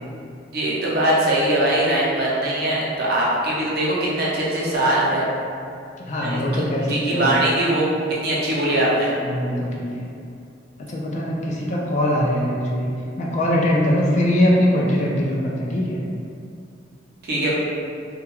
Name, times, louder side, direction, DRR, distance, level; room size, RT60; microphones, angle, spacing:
voice 1, 0.5-5.3 6.2-6.4 6.9-7.9 8.2-9.1 17.2-17.5, right 1 dB, 55° right, -6 dB, 0.6 m, -21 dB
voice 2, 6.0-7.3 9.1-10.1 10.8-16.0, equal, 40° left, -3 dB, 0.3 m, -22 dB
2.3 x 2.2 x 2.9 m, 2.4 s
head